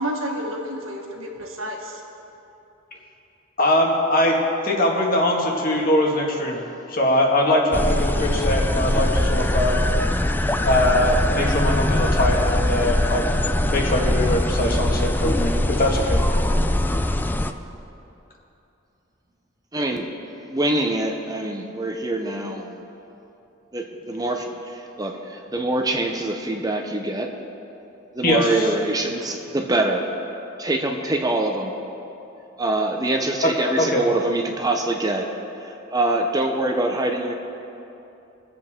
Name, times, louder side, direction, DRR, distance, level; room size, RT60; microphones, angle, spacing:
voice 1, 0.0-2.0, equal, 85° right, 0 dB, 1.7 m, -30 dB
voice 2, 3.6-4.4 4.6-6.6 6.9-9.9 10.6-13.3 13.6-16.2 28.2-28.7 33.4-33.5 33.8-34.0, left 1 dB, 45° left, -1 dB, 1.8 m, -21 dB
sound 1, 7.7-17.5, left 1 dB, 10° left, 0.4 m, -22 dB
voice 3, 19.7-20.1 20.5-22.7 23.7-27.3 28.1-30.1 30.6-31.8 32.6-35.3 35.9-37.3, right 2 dB, 20° right, 2 dB, 0.8 m, -24 dB
23.0 x 7.7 x 3.7 m, 2.9 s
head